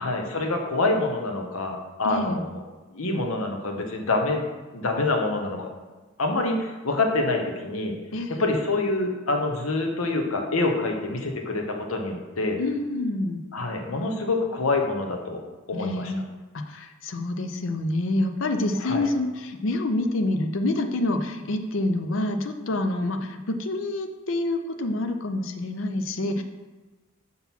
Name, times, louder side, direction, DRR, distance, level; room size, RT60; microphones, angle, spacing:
voice 1, 0.0-2.6 2.9-4.5 4.7-5.7 6.2-7.9 8.4-12.6 13.5-15.4 15.7-16.1 18.8-19.0, left 2 dB, 85° left, 3 dB, 1.0 m, -26 dB
voice 2, 2.0-2.4 8.1-8.5 12.6-13.4 15.7-16.3 16.7-26.4, left 2 dB, 70° left, 7 dB, 0.5 m, -27 dB
5.8 x 3.8 x 5.9 m, 1.2 s
head